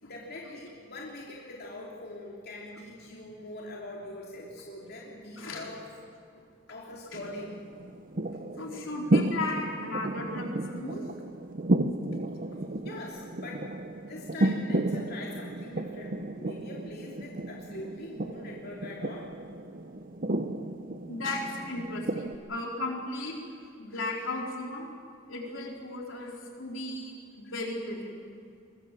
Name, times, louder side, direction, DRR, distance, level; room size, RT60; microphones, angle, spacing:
voice 1, 0.0-5.9 6.7-7.6 12.8-13.7 14.1-19.3, left 1 dB, 55° left, -3 dB, 3.3 m, -43 dB
sound 1, 7.1-22.4, right 1 dB, 45° right, 0.9 m, -32 dB
voice 2, 8.6-11.0 21.1-23.4 23.8-24.9 25.3-28.1, left 2 dB, 75° left, 0 dB, 4.4 m, -35 dB
23.5 x 21.5 x 7.7 m, 2.3 s
head